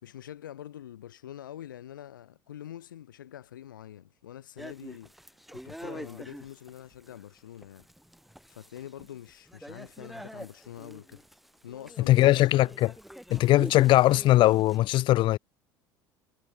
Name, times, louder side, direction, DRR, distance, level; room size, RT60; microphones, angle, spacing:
voice 1, 0.0-5.1 5.5-7.9 8.5-11.2 11.6-12.4, left 11 dB, 70° left, 5.9 m, -45 dB
sound 1, 4.6-14.8, equal, ahead, 4.9 m, -45 dB
voice 2, 12.1-12.9 13.3-15.4, left 16 dB, 50° left, 2.1 m, -20 dB
figure-of-eight pair, 65°, 11 cm